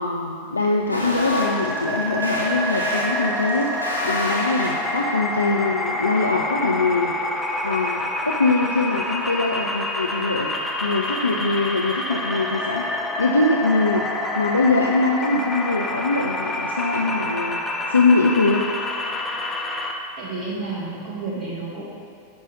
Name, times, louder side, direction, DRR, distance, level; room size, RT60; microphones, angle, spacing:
voice 1, 0.0-10.5 10.8-12.9 13.2-14.0 14.4-17.6 17.9-18.6, left 3 dB, 80° left, 1 dB, 0.5 m, -22 dB
sound 1, 0.9-5.1, left 1 dB, 85° right, 1.8 m, -29 dB
sound 2, 1.2-19.9, left 1 dB, 10° left, 0.8 m, -27 dB
voice 2, 20.2-21.9, right 3 dB, 35° right, -4 dB, 1.4 m, -30 dB
11.0 x 5.5 x 4.0 m, 2.4 s
figure-of-eight pair, 90°, 0 cm